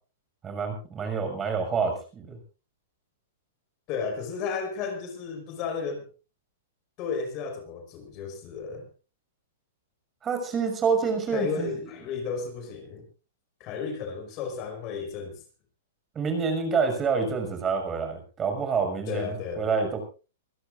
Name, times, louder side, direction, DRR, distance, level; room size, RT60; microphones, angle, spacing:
voice 1, 0.4-2.4 10.2-11.7 16.1-20.0, right 5 dB, 20° right, 5 dB, 6.3 m, -27 dB
voice 2, 3.9-6.1 7.0-8.9 11.3-13.1 13.6-15.4 19.1-19.7, left 5 dB, 40° left, 5 dB, 5.7 m, -33 dB
25.0 x 16.5 x 2.6 m, 0.35 s
hypercardioid pair, 135°, 0 cm